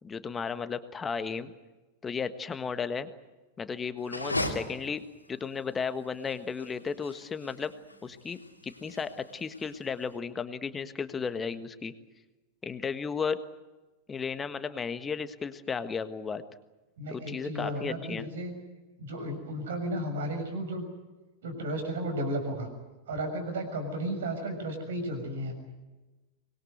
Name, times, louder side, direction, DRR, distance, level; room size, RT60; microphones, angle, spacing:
voice 1, 0.0-1.5 2.0-3.1 3.6-7.7 8.0-11.9 12.6-13.4 14.1-16.4 17.1-18.3, left 5 dB, 20° left, 11 dB, 1.5 m, -34 dB
sound 1, 4.0-10.1, left 1 dB, 85° left, 2.7 m, -38 dB
voice 2, 17.0-18.5 19.0-20.8 21.4-22.7 23.1-25.5, right 1 dB, 60° right, 6 dB, 6.7 m, -33 dB
25.0 x 21.5 x 8.0 m, 1.2 s
figure-of-eight pair, 90°, 0 cm